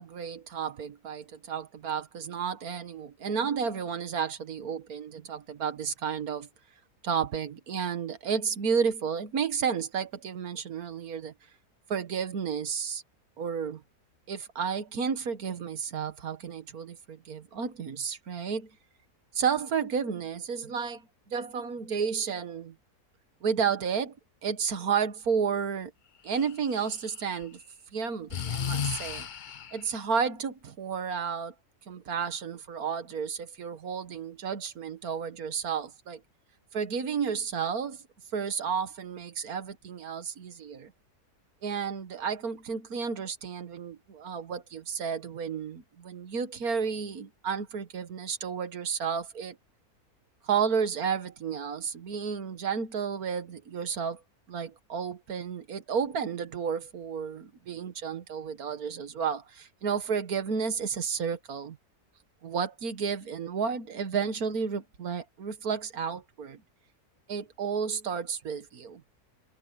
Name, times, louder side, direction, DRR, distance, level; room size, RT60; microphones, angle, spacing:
voice 1, 0.0-6.5 7.0-11.3 11.9-13.0 13.4-13.8 14.3-18.7 19.4-21.0 21.3-22.8 23.4-24.2 24.4-25.9 26.2-27.6 27.9-29.3 29.7-31.5 31.9-36.2 36.7-38.0 38.3-40.9 41.6-49.6 50.4-54.2 54.5-61.8 62.4-66.6 67.3-69.0, right 6 dB, 65° right, 1.8 m, -32 dB
Breathing, 26.3-27.4 28.3-29.9, left 7 dB, 55° left, 0.5 m, -34 dB
omnidirectional pair, 1.7 m